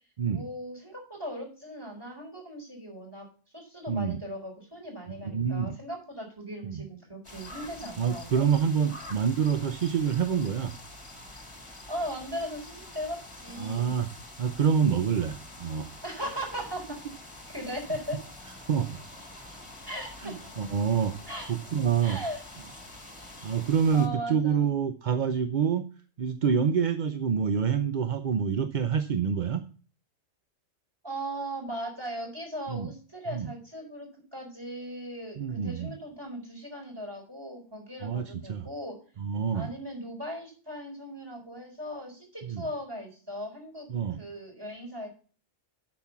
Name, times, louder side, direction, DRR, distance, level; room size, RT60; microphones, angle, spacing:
voice 1, 0.3-3.3 3.5-8.5 11.9-13.9 16.0-17.0 17.5-18.2 19.9-20.4 21.3-21.5 22.0-22.4 23.9-24.6 31.0-39.0 39.5-43.9 44.1-45.1, equal, 15° right, 0 dB, 4.3 m, -38 dB
voice 2, 3.9-4.2 5.2-5.8 6.6-6.8 8.0-10.7 13.6-14.1 14.4-15.9 18.7-19.0 20.2-21.1 21.5-22.2 23.4-25.9 26.2-29.6 32.7-32.9 33.3-33.5 35.4-35.9 38.0-38.7 39.2-39.7 42.4-42.6 43.9-44.2, right 7 dB, 50° right, 8 dB, 0.6 m, -27 dB
sound 1, 7.2-24.1, left 1 dB, 25° left, 1.7 m, -46 dB
8.5 x 6.1 x 7.1 m, 0.39 s
omnidirectional pair, 1.4 m